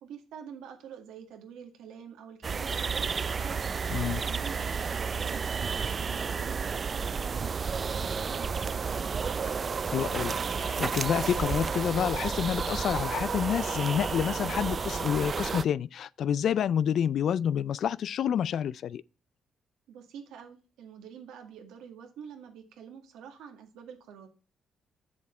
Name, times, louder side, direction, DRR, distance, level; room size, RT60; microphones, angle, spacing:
voice 1, 0.0-9.5 19.9-24.3, right 7 dB, 90° right, 1.8 m, -47 dB
sound 1, 2.4-15.6, right 5 dB, 40° right, 0.4 m, -31 dB
voice 2, 3.9-4.2 9.9-19.0, left 9 dB, 65° left, 0.3 m, -28 dB
7.5 x 7.1 x 4.4 m
cardioid pair, 90°, 0 cm